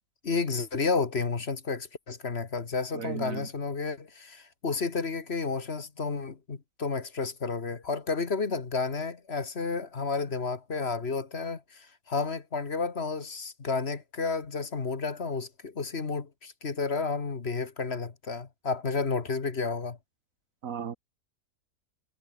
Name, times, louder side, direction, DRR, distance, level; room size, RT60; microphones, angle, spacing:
voice 1, 0.2-20.0, left 4 dB, 45° left, 1.9 m, -31 dB
voice 2, 2.9-3.5 20.6-21.0, right 7 dB, 70° right, 1.6 m, -35 dB
omnidirectional pair, 1.5 m